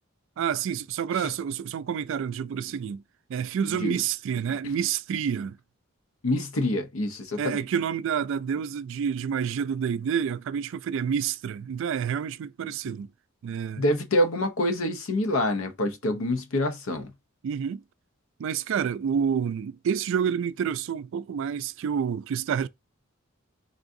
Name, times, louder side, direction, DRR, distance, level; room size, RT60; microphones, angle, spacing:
voice 1, 0.4-3.0 3.3-5.6 7.4-13.1 13.4-13.8 17.4-17.8 18.4-22.7, right 7 dB, 65° right, 0.3 m, -28 dB
voice 2, 6.2-7.6 13.8-17.1, left 1 dB, 80° left, 0.7 m, -26 dB
3.8 x 3.5 x 2.6 m
head